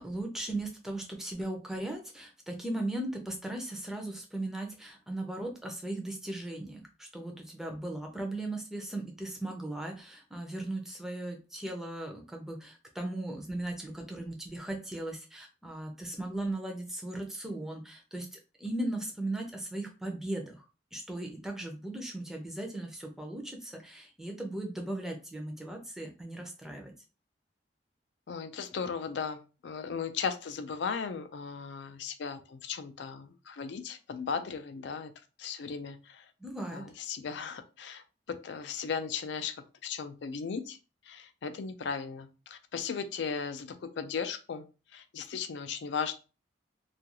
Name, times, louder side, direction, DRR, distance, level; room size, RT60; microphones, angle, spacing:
voice 1, 0.0-20.7 20.9-26.9 36.4-36.8, right 1 dB, ahead, 2 dB, 0.5 m, -37 dB
voice 2, 28.3-35.1 35.4-36.3 36.7-40.8 41.0-44.6 44.9-46.2, left 6 dB, 70° left, 9 dB, 0.4 m, -37 dB
2.4 x 2.3 x 2.9 m, 0.32 s
head